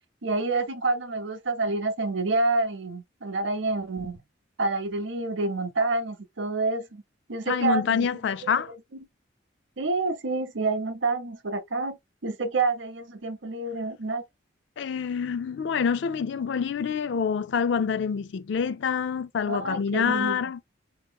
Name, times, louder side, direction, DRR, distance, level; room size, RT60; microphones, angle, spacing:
voice 1, 0.2-4.2 4.6-7.0 7.3-8.1 8.4-8.8 9.8-12.0 12.2-14.2 19.5-20.4, right 3 dB, 75° right, 0.8 m, -28 dB
voice 2, 7.5-8.7 14.8-20.6, left 6 dB, 70° left, 0.4 m, -27 dB
4.8 x 2.9 x 2.2 m
head